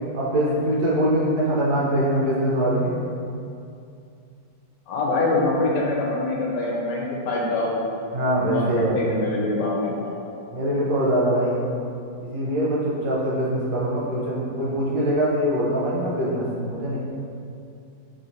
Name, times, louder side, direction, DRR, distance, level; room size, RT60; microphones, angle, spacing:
voice 1, 0.1-2.9 8.1-9.1 10.5-11.6 12.2-17.0, right 1 dB, 70° right, -6 dB, 1.2 m, -23 dB
voice 2, 4.9-7.8 8.5-10.1, left 2 dB, 80° left, -3 dB, 1.2 m, -24 dB
3.2 x 2.8 x 2.5 m, 2.5 s
omnidirectional pair, 1.9 m